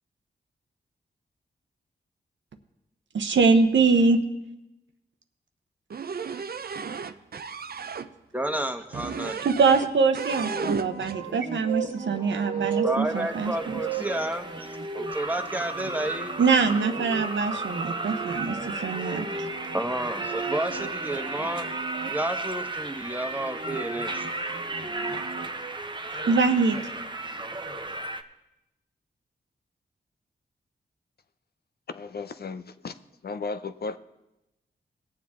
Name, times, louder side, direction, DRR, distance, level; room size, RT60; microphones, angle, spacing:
voice 1, 3.1-4.2 9.4-13.8 16.4-19.4 26.3-26.8, right 4 dB, 70° right, 0.9 m, -23 dB
sound 1, 5.9-8.1 8.9-9.9 10.1-11.2, right 6 dB, 55° right, 0.6 m, -33 dB
voice 2, 8.3-9.5 12.8-16.4 19.7-21.7 22.1-24.2, right 1 dB, 10° right, 1.3 m, -31 dB
sound 2, 10.2-22.1 23.2-25.5, right 5 dB, 90° right, 1.4 m, -36 dB
sound 3, 13.0-28.2, right 2 dB, 25° right, 0.9 m, -35 dB
voice 3, 31.9-32.9 33.2-34.0, left 4 dB, 55° left, 0.6 m, -35 dB
18.0 x 7.3 x 3.7 m
cardioid pair, 40°, 19 cm